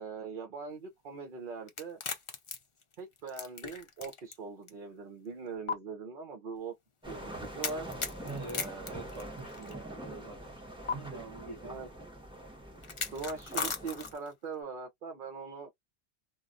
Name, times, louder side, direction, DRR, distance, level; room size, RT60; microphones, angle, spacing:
voice 1, 0.0-2.0 3.0-6.7 7.1-7.9 8.5-9.0 11.6-11.9 13.1-15.7, right 4 dB, 55° right, 0.8 m, -41 dB
sound 1, 1.7-4.4 4.7-4.8 5.7-5.8 7.6-9.7 10.9-11.0 12.8-14.3, left 5 dB, 40° left, 0.5 m, -37 dB
sound 2, 7.0-14.1, right 1 dB, 5° right, 1.1 m, -45 dB
voice 2, 8.3-11.9, right 3 dB, 35° right, 1.3 m, -45 dB
3.0 x 2.3 x 2.5 m
omnidirectional pair, 1.1 m